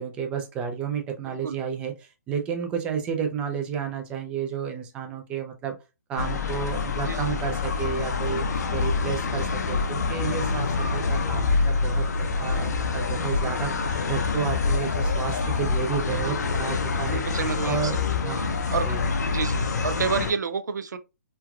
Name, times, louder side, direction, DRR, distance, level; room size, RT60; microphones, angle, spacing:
voice 1, 0.0-5.8 6.1-17.2 17.6-19.0, right 7 dB, 10° right, 0.3 m, -31 dB
sound 1, 6.2-20.3, left 4 dB, 70° left, 0.5 m, -26 dB
voice 2, 16.1-16.7 17.1-17.9 18.7-18.9 19.2-21.0, right 5 dB, 80° right, 0.4 m, -29 dB
3.1 x 2.3 x 2.3 m
hypercardioid pair, 155°, 9 cm